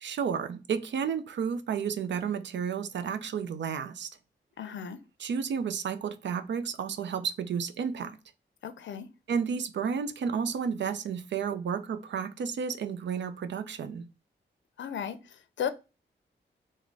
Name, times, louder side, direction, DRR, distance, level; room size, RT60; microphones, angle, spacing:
voice 1, 0.0-4.1 5.2-8.2 9.3-14.1, right 6 dB, 70° right, 0.5 m, -32 dB
voice 2, 4.6-5.0 8.6-9.1 14.8-15.7, left 8 dB, 70° left, 0.5 m, -35 dB
3.6 x 2.1 x 3.3 m
cardioid pair, 50°, 20 cm